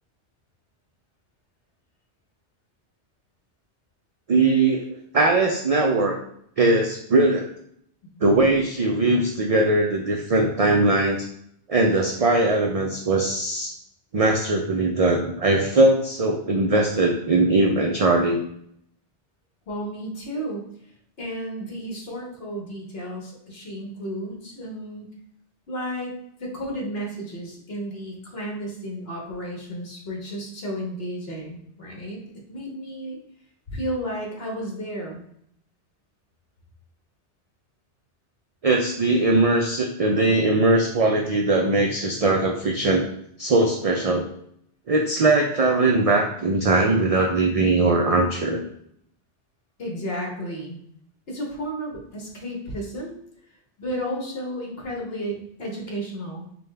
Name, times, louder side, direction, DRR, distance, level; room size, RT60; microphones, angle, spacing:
voice 1, 4.3-4.9 5.1-6.1 6.6-7.5 8.2-11.2 11.7-13.7 14.1-18.4 38.6-43.0 43.4-44.3 44.9-48.6, right 2 dB, 65° right, 1 dB, 0.3 m, -20 dB
voice 2, 19.7-20.7 21.2-25.1 25.7-26.1 26.4-32.2 32.5-33.2 33.7-35.2 49.8-50.8 51.3-53.1 53.8-56.4, equal, 60° left, -1 dB, 1.3 m, -33 dB
5.3 x 2.3 x 3.2 m, 0.70 s
omnidirectional pair, 1.1 m